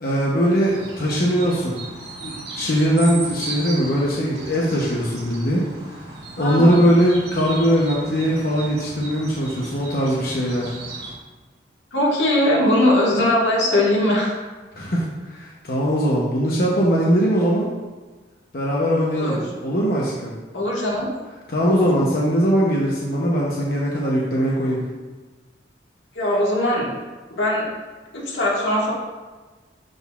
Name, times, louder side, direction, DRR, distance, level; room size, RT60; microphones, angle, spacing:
voice 1, 0.0-1.8 2.2-5.7 6.4-10.7 14.7-17.7 18.5-20.3 21.5-24.8, equal, 55° left, -4 dB, 0.8 m, -20 dB
sound 1, 0.6-11.1, right 3 dB, 70° right, 1.3 m, -36 dB
voice 2, 6.4-6.8 11.9-14.3 19.1-19.4 20.5-21.1 21.6-21.8 26.2-26.9 27.3-27.7 28.1-28.9, left 1 dB, 85° left, -4 dB, 1.7 m, -20 dB
11.5 x 4.0 x 2.4 m, 1.3 s
head